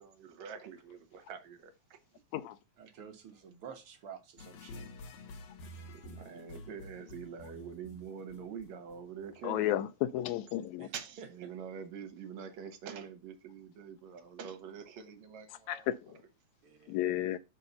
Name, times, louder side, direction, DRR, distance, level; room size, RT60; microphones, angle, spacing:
voice 1, 0.0-2.0 6.0-9.7 10.9-16.3, right 7 dB, 70° right, 2.4 m, -45 dB
voice 2, 2.8-4.9 10.8-11.3 16.6-17.1, right 7 dB, 55° right, 1.9 m, -50 dB
sound 1, 4.4-9.4, left 1 dB, 65° left, 2.2 m, -49 dB
voice 3, 9.4-10.9 15.7-16.0 16.9-17.4, left 13 dB, 85° left, 2.0 m, -32 dB
5.5 x 5.4 x 5.3 m
omnidirectional pair, 3.3 m